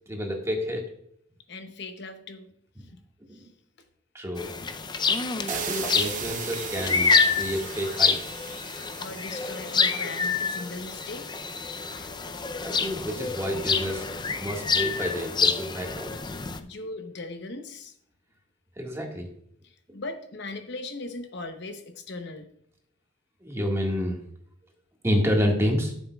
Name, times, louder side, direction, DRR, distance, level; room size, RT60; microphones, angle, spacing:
voice 1, 0.1-0.9 3.3-3.5 4.1-4.6 5.5-8.7 12.6-14.1 14.4-16.1 18.8-19.3 23.4-24.2 25.0-25.9, equal, 15° right, 0 dB, 1.7 m, -29 dB
voice 2, 1.5-2.5 2.8-3.0 3.3-3.5 4.6-4.7 9.0-11.4 11.9-12.2 16.6-17.9 19.6-22.5, left 2 dB, 60° left, 7 dB, 0.8 m, -39 dB
sound 1, 4.4-16.6, left 5 dB, 20° left, 0.5 m, -27 dB
sound 2, 5.5-12.3, right 7 dB, 40° right, 0.8 m, -39 dB
13.0 x 7.1 x 2.3 m, 0.68 s
head